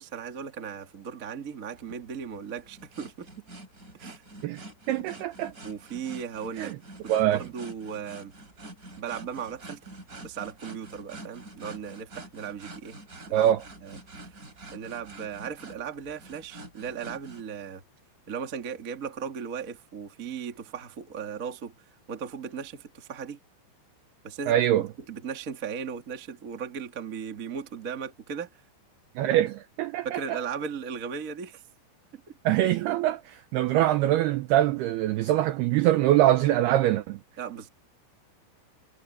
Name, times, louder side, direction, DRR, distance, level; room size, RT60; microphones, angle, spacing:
voice 1, 0.0-3.4 4.0-4.2 5.6-6.7 7.2-8.3 9.0-9.8 10.2-13.0 13.3-13.5 13.8-14.3 14.7-17.8 18.3-21.7 22.1-23.4 24.2-24.6 25.1-28.5 30.0-31.6 37.4-37.7, right 7 dB, 60° right, 0.8 m, -37 dB
sound 1, 1.7-17.4, right 2 dB, 20° right, 3.9 m, -46 dB
voice 2, 4.9-5.5 6.6-6.8 7.1-7.4 13.3-13.6 24.5-24.9 29.2-30.4 32.5-37.2, right 13 dB, 85° right, 2.3 m, -23 dB
omnidirectional pair, 5.6 m